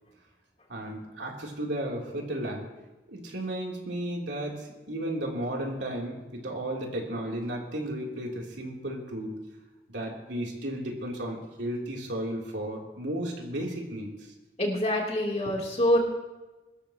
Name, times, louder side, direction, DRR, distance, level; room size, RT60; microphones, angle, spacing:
voice 1, 0.7-2.7 3.1-9.3 9.9-14.3, right 1 dB, 90° right, -1 dB, 3.3 m, -34 dB
voice 2, 14.6-16.0, left 1 dB, 35° left, -1 dB, 3.3 m, -25 dB
22.5 x 13.5 x 3.0 m, 1.1 s
head